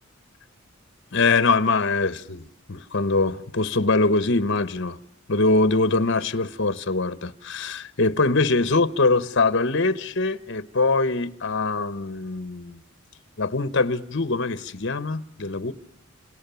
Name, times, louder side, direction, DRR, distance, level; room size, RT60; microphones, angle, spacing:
voice 1, 1.1-2.4 2.7-5.0 5.3-12.8 13.4-15.7, left 3 dB, 60° left, 1.1 m, -23 dB
28.5 x 27.5 x 7.0 m
head